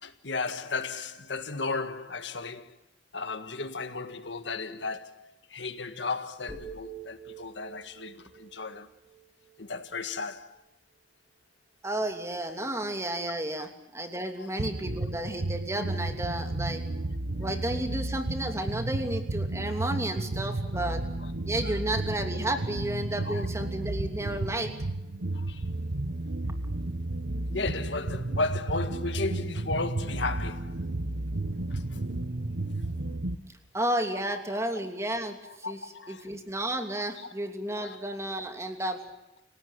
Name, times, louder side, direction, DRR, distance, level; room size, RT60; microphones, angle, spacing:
voice 1, 0.0-2.7 3.1-8.9 9.6-10.6 12.7-12.8 14.4-14.5 15.3-15.4 20.7-20.9 21.2-21.3 21.6-21.8 23.2-23.5 25.3-25.6 27.5-30.8 31.7-32.0 34.5-34.6 35.4-36.3 37.2-37.3 37.8-38.0, left 3 dB, 70° left, 1.8 m, -35 dB
sound 1, 6.5-10.6, right 5 dB, 15° left, 6.6 m, -47 dB
voice 2, 11.8-16.8 17.4-21.0 21.5-24.7 33.7-35.8 36.1-39.0, right 1 dB, 15° right, 3.0 m, -32 dB
sound 2, 14.6-33.4, right 2 dB, 85° right, 1.2 m, -32 dB
29.0 x 18.0 x 9.3 m
head